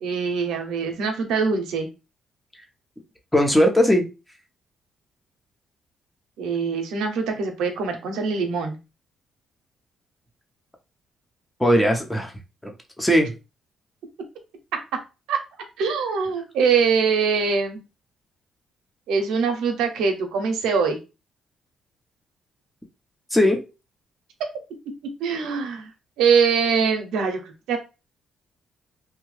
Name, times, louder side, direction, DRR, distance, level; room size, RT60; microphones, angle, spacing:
voice 1, 0.0-1.9 6.4-8.8 14.7-15.0 15.3-15.4 15.8-17.8 19.1-21.0 24.4-25.9 26.2-27.4 27.7-27.8, right 5 dB, 90° right, 5 dB, 0.6 m, -23 dB
voice 2, 3.3-4.1 11.6-12.3 12.6-13.3 23.3-23.6, equal, 5° left, 3 dB, 0.8 m, -19 dB
2.8 x 2.2 x 3.2 m, 0.29 s
cardioid pair, 90°, 0 cm